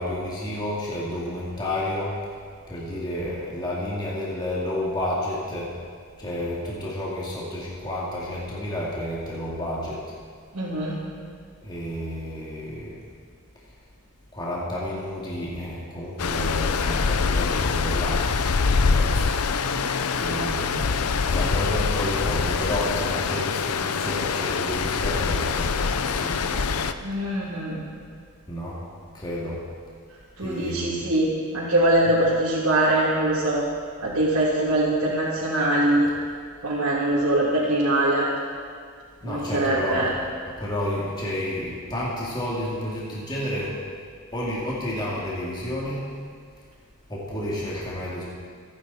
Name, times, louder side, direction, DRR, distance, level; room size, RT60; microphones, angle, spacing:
voice 1, 0.0-2.2 2.7-5.7 6.2-10.0 11.6-13.0 14.3-18.2 18.9-19.5 20.2-26.7 28.5-28.8 29.1-29.6 30.4-31.1 32.1-32.2 39.2-40.2 40.6-43.8 44.3-46.1 47.1-48.2, left 1 dB, 20° left, -6 dB, 2.5 m, -31 dB
voice 2, 10.5-10.9 27.0-27.8 30.4-33.6 34.0-36.1 36.6-38.3 39.2-40.1, right 1 dB, 75° right, -8 dB, 2.8 m, -22 dB
Stream, 16.2-26.9, left 5 dB, 85° left, 0.7 m, -24 dB
26.0 x 9.9 x 4.2 m, 2.1 s
head